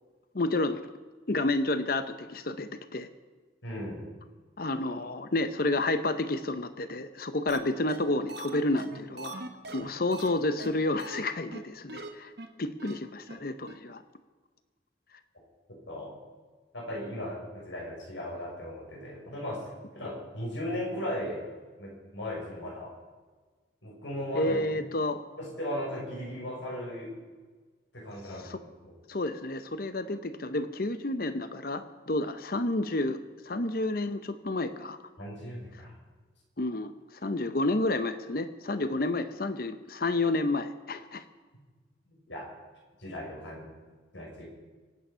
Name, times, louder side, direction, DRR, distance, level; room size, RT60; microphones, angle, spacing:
voice 1, 0.3-0.8 1.3-3.1 4.6-9.4 9.7-12.3 12.6-14.0 24.3-25.2 28.5-28.6 29.1-33.2 33.5-35.0 36.6-36.9 37.2-41.2, left 2 dB, 50° left, 10 dB, 0.8 m, -30 dB
voice 2, 3.6-4.1 15.9-16.1 16.7-19.7 19.9-21.4 21.8-22.9 23.8-24.6 25.4-27.1 27.9-28.9 35.2-35.9 42.3-42.4 43.0-43.7 44.1-44.5, left 1 dB, 85° left, -2 dB, 6.1 m, -37 dB
sound 1, 7.5-7.6 7.9-8.0 8.3-10.3 10.6-10.7 11.0-11.2 11.5-11.6 11.9-12.1 12.4-12.5 12.8-12.9 13.3-13.4 13.7-13.8, right 2 dB, 60° right, 1.5 m, -41 dB
25.5 x 9.0 x 5.6 m, 1.4 s
head